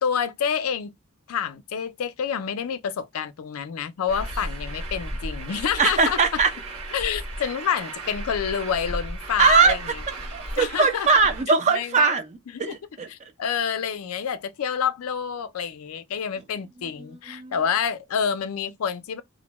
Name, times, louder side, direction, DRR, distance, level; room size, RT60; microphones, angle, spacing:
voice 1, 0.0-0.9 1.3-6.2 6.9-9.8 10.6-11.1 11.7-12.1 12.6-12.7 13.1-19.2, left 7 dB, 70° left, 0.4 m, -28 dB
Truck, 4.1-11.4, right 1 dB, 80° right, 1.1 m, -35 dB
voice 2, 5.8-6.5 9.4-9.8 10.3-13.1 17.0-17.5, right 4 dB, 35° right, 0.4 m, -21 dB
2.6 x 2.1 x 2.9 m
head